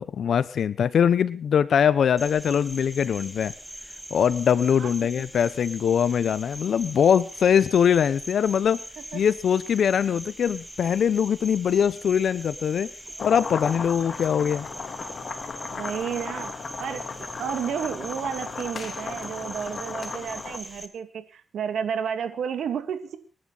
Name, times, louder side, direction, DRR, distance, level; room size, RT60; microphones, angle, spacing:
voice 1, 0.0-3.5 4.1-8.8 9.1-12.9 13.2-14.7, left 8 dB, 75° left, 16 dB, 1.0 m, -22 dB
Cricket, 2.2-20.9, right 1 dB, 5° right, 2.6 m, -42 dB
sound 1, 13.2-20.6, left 5 dB, 50° left, 2.4 m, -36 dB
voice 2, 15.7-23.2, right 7 dB, 85° right, 9 dB, 2.3 m, -32 dB
28.0 x 11.0 x 4.2 m, 0.35 s
cardioid pair, 90°, 0 cm